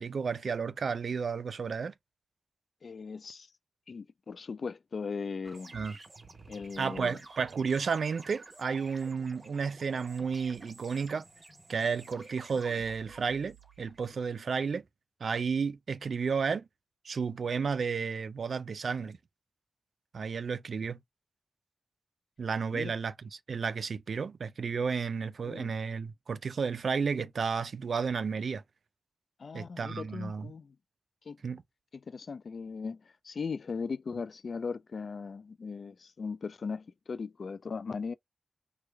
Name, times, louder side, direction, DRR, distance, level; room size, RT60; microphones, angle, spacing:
voice 1, 0.0-1.9 5.7-6.0 6.8-11.3 11.7-14.8 15.2-16.7 17.0-19.2 20.1-21.0 22.4-23.1 23.5-28.6 29.5-30.5 31.4-31.6, right 5 dB, 90° right, 0.4 m, -32 dB
voice 2, 2.8-3.5 3.9-5.7 6.5-7.2 22.7-22.9 25.4-25.7 29.4-30.8 31.3-31.4 31.9-38.1, left 5 dB, 75° left, 0.3 m, -38 dB
sound 1, 5.4-14.2, right 3 dB, 50° right, 1.2 m, -51 dB
3.2 x 2.3 x 3.2 m
wide cardioid pair, 85°, 0 cm